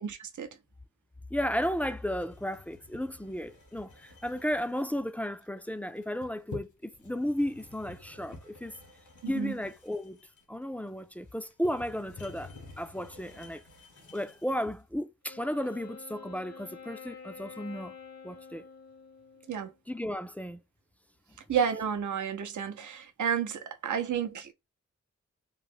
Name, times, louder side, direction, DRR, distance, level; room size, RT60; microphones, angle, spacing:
voice 1, 0.0-0.6 9.2-9.5 19.5-19.7 21.5-24.5, right 8 dB, 75° right, 0.6 m, -31 dB
voice 2, 1.3-8.8 9.3-10.2 10.5-13.6 14.1-17.9 18.2-18.7 19.9-20.6, equal, 5° left, 0.3 m, -34 dB
sound 1, 1.5-14.8, left 2 dB, 80° left, 1.5 m, -51 dB
Wind instrument woodwind instrument, 15.3-19.8, left 5 dB, 55° left, 0.8 m, -48 dB
3.1 x 2.0 x 3.0 m
wide cardioid pair, 75°, 30 cm